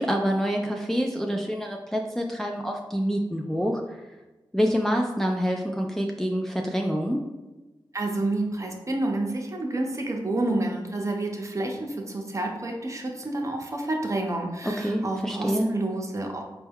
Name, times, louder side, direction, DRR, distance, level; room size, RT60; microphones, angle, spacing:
voice 1, 0.0-3.8 4.5-7.2 14.6-15.7, equal, 5° left, 1 dB, 0.3 m, -26 dB
voice 2, 7.9-16.4, right 2 dB, 35° right, 1 dB, 0.7 m, -29 dB
4.2 x 2.3 x 3.5 m, 1.1 s
cardioid pair, 55°, 9 cm